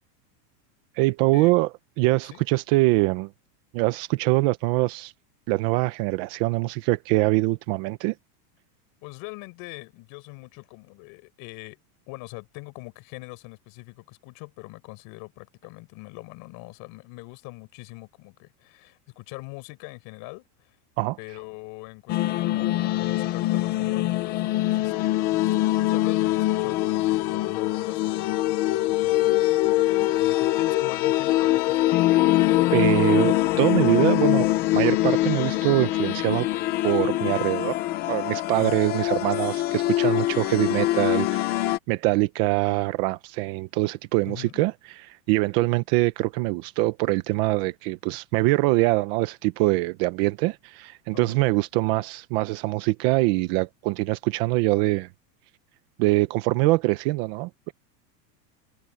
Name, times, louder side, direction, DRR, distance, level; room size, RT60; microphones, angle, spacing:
voice 1, 1.0-1.7 2.0-3.3 3.7-5.1 5.5-8.1 21.0-21.2 32.7-34.5 34.7-36.5 36.8-37.8 38.1-44.7 45.1-55.1 56.0-57.7, right 20 dB, 35° right, 0.8 m, -23 dB
voice 2, 9.0-11.8 12.1-20.8 21.2-29.4 29.9-32.0 32.4-33.0 38.6-38.9 44.3-44.6 51.1-51.4, left 27 dB, 40° left, 5.5 m, -43 dB
sound 1, 22.1-41.8, left 16 dB, 20° left, 0.4 m, -23 dB
supercardioid pair, 170°, 50 cm